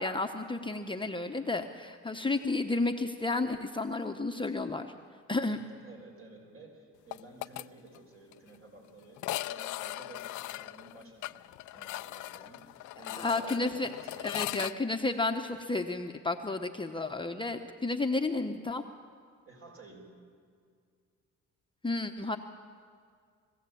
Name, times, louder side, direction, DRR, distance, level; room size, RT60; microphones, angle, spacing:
voice 1, 0.0-4.9 5.3-5.6 13.2-13.9 14.2-18.8 21.8-22.4, left 3 dB, 15° left, 4 dB, 0.9 m, -32 dB
voice 2, 5.5-12.7 12.9-14.4 19.4-20.2, right 2 dB, 50° right, 0 dB, 6.3 m, -52 dB
sound 1, 7.1-7.6 7.9-8.0 8.3-8.4 9.2-14.7, left 16 dB, 80° left, 0.5 m, -39 dB
22.0 x 15.5 x 8.5 m, 2.2 s
cardioid pair, 90°, 30 cm